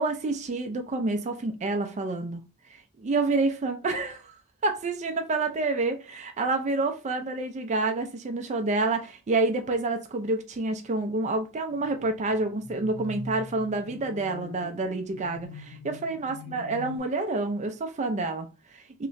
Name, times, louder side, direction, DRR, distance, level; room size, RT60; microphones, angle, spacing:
voice 1, 0.0-2.4 2.7-19.1, right 3 dB, 30° right, 0.4 m, -28 dB
sound 1, 11.7-17.0, left 3 dB, 55° left, 0.6 m, -43 dB
3.2 x 2.9 x 2.5 m
head